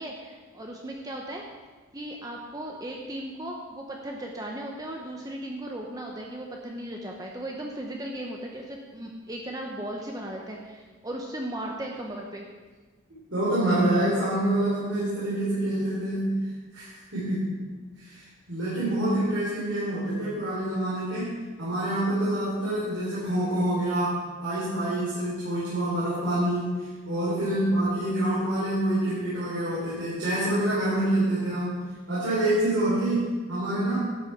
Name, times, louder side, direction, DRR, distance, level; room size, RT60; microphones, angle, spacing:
voice 1, 0.0-1.4 1.9-12.5 27.5-27.7, right 1 dB, 20° right, 0 dB, 0.9 m, -37 dB
voice 2, 13.3-16.3 16.7-17.6 18.0-21.3 21.6-31.8 32.1-34.0, right 1 dB, 85° right, -10 dB, 4.4 m, -26 dB
12.5 x 8.2 x 6.0 m, 1.3 s
head